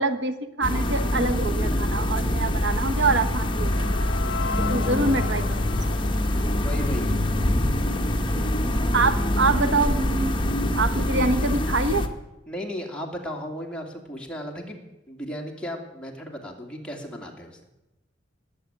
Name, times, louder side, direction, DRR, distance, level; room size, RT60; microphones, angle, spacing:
voice 1, 0.0-4.1 4.7-5.6 8.3-8.5 8.9-12.1, right 3 dB, 70° right, 10 dB, 1.0 m, -25 dB
sound 1, 0.6-12.1, left 1 dB, 25° left, 1.3 m, -24 dB
sound 2, 2.5-7.6, left 5 dB, 65° left, 0.8 m, -37 dB
voice 2, 6.6-7.1 12.5-17.6, equal, 5° left, 0 dB, 2.4 m, -35 dB
19.0 x 8.1 x 8.9 m, 0.97 s
head